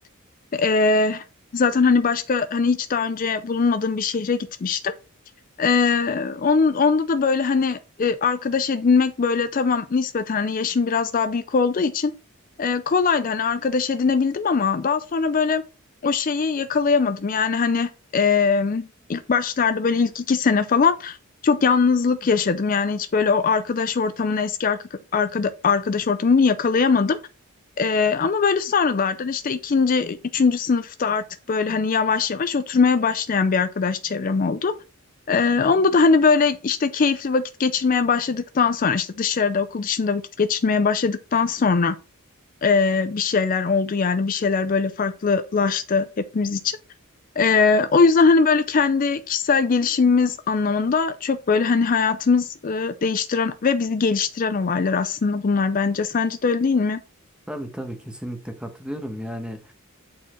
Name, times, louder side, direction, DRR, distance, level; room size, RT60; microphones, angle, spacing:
voice 1, 0.5-1.2 1.5-4.9 5.6-12.1 12.6-15.6 16.0-21.2 21.4-24.8 25.1-27.2 27.8-34.7 35.3-42.0 42.6-46.1 46.3-46.8 47.4-57.0, left 5 dB, 40° left, 0.4 m, -21 dB
voice 2, 57.5-59.7, equal, 5° right, 1.0 m, -33 dB
8.4 x 4.5 x 4.3 m
head